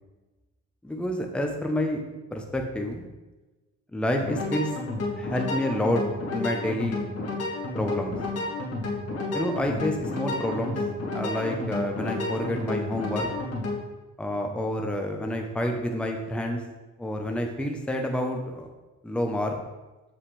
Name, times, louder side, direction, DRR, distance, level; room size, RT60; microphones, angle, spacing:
voice 1, 0.8-2.0 2.3-3.0 3.9-4.7 5.2-6.0 6.3-7.1 7.7-8.2 9.3-10.8 11.1-13.3 14.2-16.6 17.0-18.7 19.0-19.6, left 1 dB, 5° left, 2 dB, 0.8 m, -28 dB
sound 1, 4.2-13.8, left 2 dB, 55° left, 1.8 m, -31 dB
7.3 x 5.9 x 3.3 m, 1.1 s
cardioid pair, 90°, 30 cm